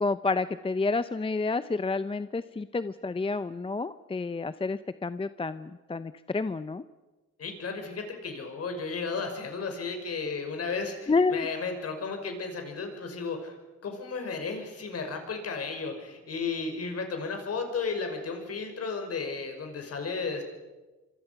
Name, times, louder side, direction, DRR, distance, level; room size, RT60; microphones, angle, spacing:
voice 1, 0.0-6.8 11.1-11.5, left 3 dB, 20° left, 13 dB, 0.7 m, -29 dB
voice 2, 7.4-13.5 13.8-20.4, left 4 dB, 50° left, 5 dB, 5.7 m, -34 dB
25.5 x 25.0 x 5.9 m, 1.2 s
cardioid pair, 90°, 30 cm